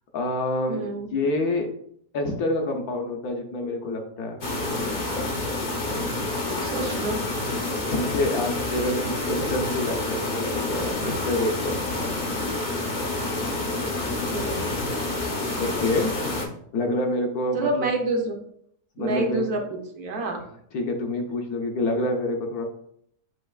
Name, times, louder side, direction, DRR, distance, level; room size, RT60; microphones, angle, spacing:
voice 1, 0.1-0.8 1.1-1.7 2.1-4.4 7.9-11.8 15.5-16.2 16.7-17.9 19.0-19.5 20.7-22.6, left 1 dB, 65° left, 3 dB, 1.1 m, -27 dB
voice 2, 0.7-1.1 6.6-7.2 13.7-13.9 14.3-14.7 17.5-18.4 19.0-20.4, right 2 dB, 65° right, 2 dB, 1.2 m, -28 dB
sound 1, 4.4-16.5, left 2 dB, 45° left, 0.6 m, -28 dB
7.8 x 2.9 x 2.3 m, 0.67 s
omnidirectional pair, 1.8 m